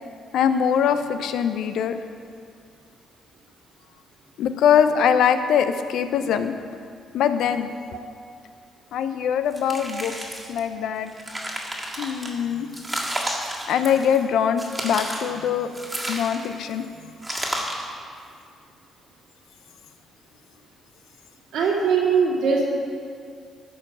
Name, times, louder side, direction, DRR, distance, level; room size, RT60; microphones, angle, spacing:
voice 1, 0.3-2.0 4.4-6.5 7.1-7.7 8.9-10.2 10.5-11.1 12.0-12.7 13.7-15.7 16.1-16.8, left 8 dB, 80° left, 9 dB, 0.6 m, -22 dB
sound 1, 9.5-10.6 11.0-12.3 12.7-14.2 14.6-15.3 15.7-16.6 17.2-17.9, right 1 dB, 15° right, 1.7 m, -31 dB
voice 2, 21.5-22.6, right 5 dB, 80° right, -3 dB, 2.2 m, -21 dB
14.0 x 4.7 x 6.2 m, 2.3 s
cardioid pair, 90°, 0 cm